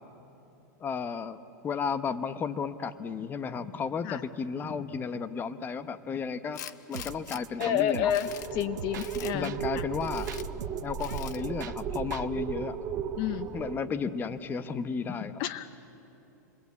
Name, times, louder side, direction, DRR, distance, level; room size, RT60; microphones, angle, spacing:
voice 1, 0.8-6.6 6.9-8.1 9.3-10.3 10.8-12.8 13.5-15.4, left 6 dB, 20° left, 11 dB, 0.9 m, -33 dB
Tools, 6.5-7.4 7.9-8.5 9.0-9.3 10.0-10.5 11.0-11.4, left 11 dB, 70° left, 1.1 m, -44 dB
sound 1, 6.9-12.3, right 9 dB, 80° right, 0.9 m, -42 dB
voice 2, 7.6-9.8 13.2-13.5 15.4-15.7, left 10 dB, 45° left, 12 dB, 0.8 m, -30 dB
sound 2, 8.2-13.8, right 7 dB, 30° right, 1.5 m, -35 dB
28.5 x 22.0 x 8.4 m, 2.8 s
hypercardioid pair, 130°, 10 cm